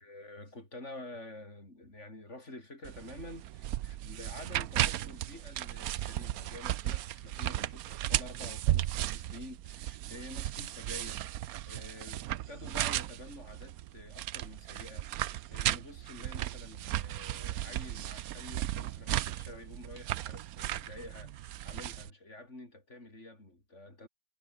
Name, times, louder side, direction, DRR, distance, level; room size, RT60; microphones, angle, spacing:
voice 1, 0.0-24.1, left 2 dB, 40° left, 6.6 m, -49 dB
sound 1, 2.8-22.1, right 13 dB, 65° right, 1.0 m, -35 dB
omnidirectional pair, 1.8 m